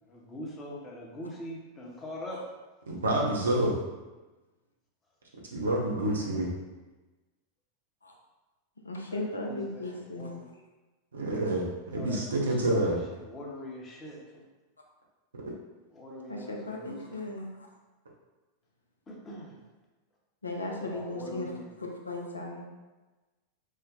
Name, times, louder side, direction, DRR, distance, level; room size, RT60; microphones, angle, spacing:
voice 1, 0.0-2.5 9.0-10.5 11.9-14.4 15.9-17.2 19.1-19.6 20.8-21.8, left 1 dB, 20° left, -3 dB, 0.8 m, -43 dB
voice 2, 2.9-3.7 5.5-6.5 11.1-13.0, right 1 dB, 70° right, -3 dB, 0.7 m, -28 dB
voice 3, 8.8-10.4 16.3-17.7 20.4-21.5 21.8-22.7, left 2 dB, 80° left, 0 dB, 0.5 m, -36 dB
3.1 x 2.1 x 3.8 m, 1.2 s
figure-of-eight pair, 90°, 0 cm